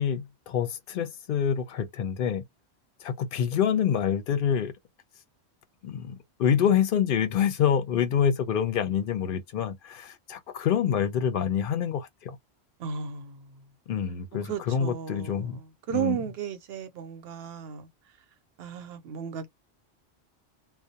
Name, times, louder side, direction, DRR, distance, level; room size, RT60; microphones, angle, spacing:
voice 1, 0.0-2.4 3.0-4.7 5.8-12.4 13.9-15.6 15.9-16.2, left 8 dB, 60° left, 0.7 m, -26 dB
voice 2, 12.8-13.5 14.4-17.9 18.6-19.5, right 9 dB, 70° right, 0.8 m, -34 dB
2.3 x 2.0 x 2.7 m
omnidirectional pair, 1.1 m